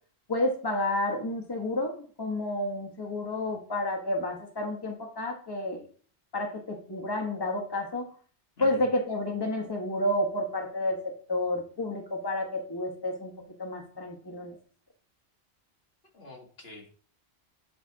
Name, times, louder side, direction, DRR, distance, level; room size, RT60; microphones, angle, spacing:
voice 1, 0.3-5.8 6.3-8.1 8.6-11.0 11.3-13.3 13.6-14.5, left 1 dB, 25° left, 1 dB, 1.2 m, -30 dB
voice 2, 8.6-8.9 16.1-16.9, left 2 dB, 70° left, 0 dB, 1.9 m, -47 dB
8.9 x 3.4 x 4.6 m, 0.43 s
omnidirectional pair, 1.1 m